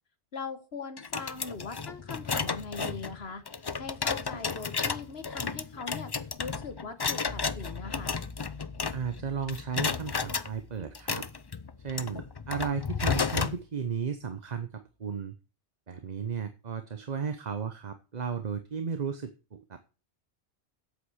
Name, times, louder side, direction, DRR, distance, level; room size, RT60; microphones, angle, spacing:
voice 1, 0.3-3.4 3.8-6.1 6.4-8.2, left 4 dB, 65° left, 10 dB, 1.6 m, -40 dB
sound 1, 1.0-9.2 9.5-10.5 10.9-13.6, left 5 dB, 35° left, 0.4 m, -33 dB
sound 2, 7.2-13.0, left 3 dB, 90° left, 2.3 m, -47 dB
voice 2, 8.9-11.3 11.8-15.4 15.9-19.8, right 6 dB, 40° right, 9 dB, 1.0 m, -34 dB
8.4 x 8.3 x 6.3 m, 0.33 s
omnidirectional pair, 1.1 m